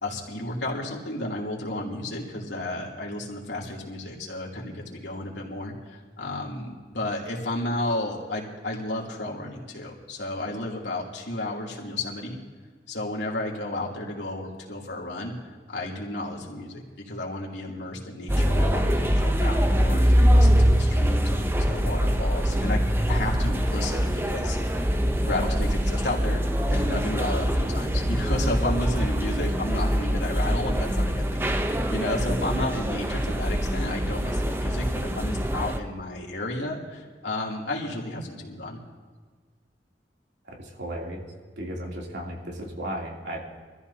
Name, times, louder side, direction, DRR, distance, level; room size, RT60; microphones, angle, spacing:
voice 1, 0.0-12.4 12.9-15.3 15.7-24.9 25.2-26.4 26.7-38.8, left 1 dB, 80° left, -3 dB, 3.0 m, -32 dB
sound 1, 18.3-35.8, equal, 15° right, 0.7 m, -23 dB
voice 2, 40.8-41.3 41.6-43.4, right 1 dB, 75° right, -2 dB, 3.1 m, -34 dB
24.5 x 14.5 x 2.8 m, 1.5 s
head